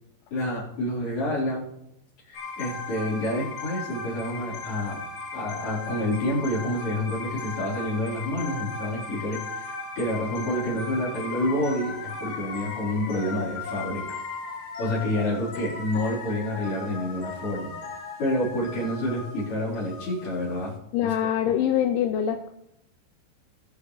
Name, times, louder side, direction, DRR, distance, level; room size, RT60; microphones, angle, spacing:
voice 1, 0.3-1.7 2.3-5.0 5.3-14.0 14.8-17.7 18.2-20.7 21.0-21.1, left 1 dB, 45° left, -7 dB, 5.1 m, -28 dB
sound 1, 2.3-20.7, left 4 dB, 65° left, 1.9 m, -37 dB
voice 2, 20.9-22.5, left 10 dB, 85° left, 5 dB, 3.0 m, -24 dB
20.5 x 6.9 x 3.2 m, 0.82 s
omnidirectional pair, 5.4 m